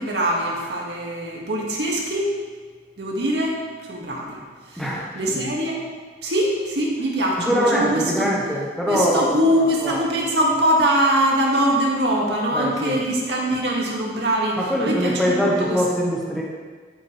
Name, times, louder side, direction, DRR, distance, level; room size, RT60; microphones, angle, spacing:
voice 1, 0.0-2.4 3.0-3.6 3.9-4.4 4.7-4.9 5.1-5.8 6.2-8.3 8.9-15.8, right 1 dB, 70° right, -2 dB, 2.2 m, -22 dB
voice 2, 4.8-5.2 7.4-9.3 9.8-10.0 12.5-13.0 14.5-16.4, equal, ahead, -5 dB, 1.3 m, -23 dB
13.5 x 8.5 x 3.4 m, 1.5 s
head